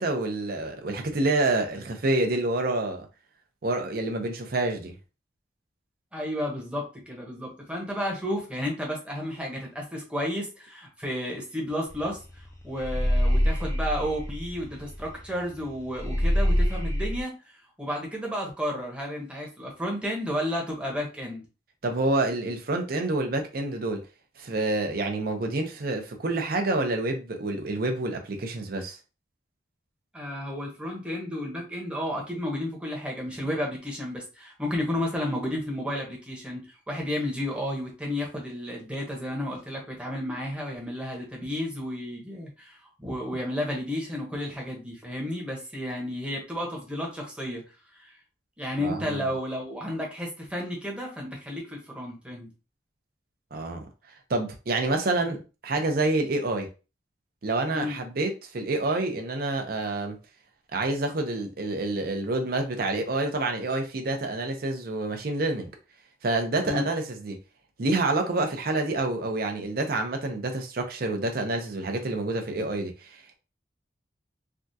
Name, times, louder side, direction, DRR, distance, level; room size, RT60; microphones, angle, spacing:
voice 1, 0.0-3.1 3.6-4.9 21.8-24.0 24.4-29.0 48.8-49.3 53.5-53.8 54.3-55.4 55.6-56.7 57.4-60.2 60.7-65.7 66.2-67.4 67.8-73.4, right 2 dB, 55° right, 0.6 m, -28 dB
voice 2, 6.1-21.4 30.1-47.6 48.0-48.1 48.6-52.5 55.3-55.4 57.7-58.0 66.6-66.9, left 1 dB, 5° right, 0.9 m, -32 dB
sound 1, 11.9-12.1 12.4-15.2 15.5-15.6 16.0-17.2, equal, 20° left, 0.5 m, -25 dB
3.4 x 2.3 x 2.7 m
head